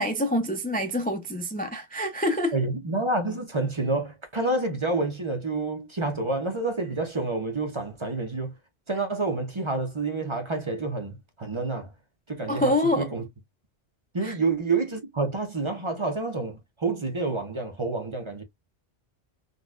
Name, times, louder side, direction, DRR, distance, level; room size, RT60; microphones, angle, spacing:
voice 1, 0.0-2.5 12.5-13.1 14.2-14.3, left 1 dB, 15° left, 0.4 m, -26 dB
voice 2, 2.5-8.5 8.9-11.9 12.3-13.2 14.1-18.4, right 3 dB, 30° right, 0.7 m, -28 dB
4.0 x 2.3 x 2.3 m
omnidirectional pair, 1.1 m